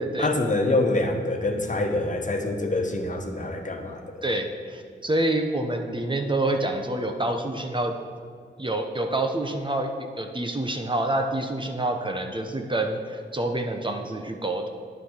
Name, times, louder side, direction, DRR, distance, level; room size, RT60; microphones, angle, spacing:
voice 1, 0.2-4.2, left 2 dB, 40° left, 3 dB, 1.5 m, -25 dB
voice 2, 4.2-8.0 8.6-14.7, right 1 dB, 25° right, 4 dB, 1.1 m, -27 dB
9.5 x 9.0 x 6.6 m, 2.1 s
cardioid pair, 60°, 19 cm